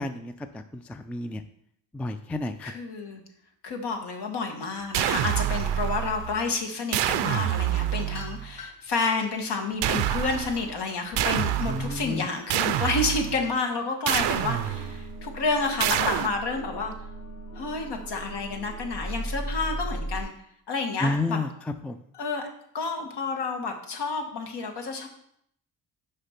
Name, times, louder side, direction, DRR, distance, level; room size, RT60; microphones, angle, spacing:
voice 1, 0.0-1.4 1.9-2.7 11.7-12.3 21.0-22.0, left 2 dB, 5° left, 9 dB, 0.3 m, -31 dB
voice 2, 2.6-3.2 3.6-16.9 17.5-20.3 20.7-21.4 22.1-22.5 22.7-25.1, left 4 dB, 65° left, 4 dB, 1.6 m, -30 dB
sound 1, 4.9-6.5 6.9-8.5 9.8-10.7 11.2-12.1 12.5-13.5 14.1-15.0 15.8-16.3, right 12 dB, 75° right, 0.6 m, -27 dB
sound 2, 7.6-8.9 9.5-11.7, left 2 dB, 35° left, 3.2 m, -42 dB
sound 3, 14.1-20.2, right 1 dB, 85° left, 2.0 m, -37 dB
6.5 x 5.2 x 5.8 m, 0.70 s
cardioid pair, 110°, 43 cm